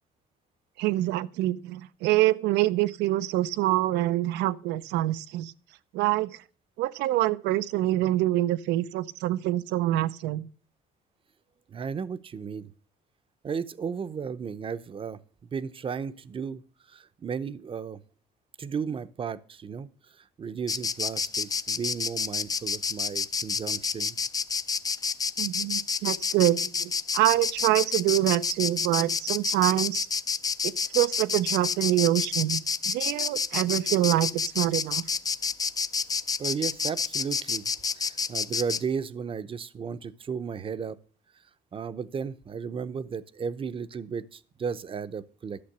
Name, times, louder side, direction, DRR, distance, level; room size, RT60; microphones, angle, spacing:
voice 1, 0.8-5.5 5.9-6.3 6.8-10.5 25.4-30.1 30.6-32.6 32.9-35.0, right 15 dB, 85° right, 0.6 m, -25 dB
voice 2, 11.7-12.7 13.4-15.2 15.5-16.6 16.9-18.0 18.6-19.9 20.4-24.2 36.4-37.7 38.0-41.0 41.7-45.6, right 6 dB, 30° right, 0.7 m, -34 dB
Insect, 20.7-38.8, left 5 dB, 20° left, 0.4 m, -29 dB
12.0 x 6.8 x 6.7 m
cardioid pair, 110°, 17 cm